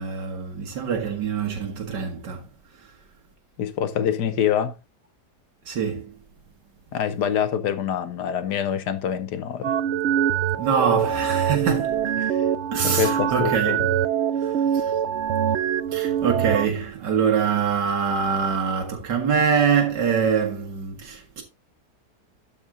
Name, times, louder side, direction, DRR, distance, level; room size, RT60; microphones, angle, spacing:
voice 1, 0.0-2.4 2.8-2.9 5.7-6.1 10.6-12.1 12.7-13.8 14.4-14.9 15.9-21.4, right 6 dB, 85° right, 2.1 m, -24 dB
voice 2, 3.6-4.7 6.9-9.8 11.7-11.8 12.2-12.5 12.8-13.9, left 9 dB, 80° left, 1.6 m, -25 dB
sound 1, 9.6-16.7, right 9 dB, 70° right, 0.6 m, -24 dB
12.5 x 5.4 x 3.7 m
omnidirectional pair, 1.8 m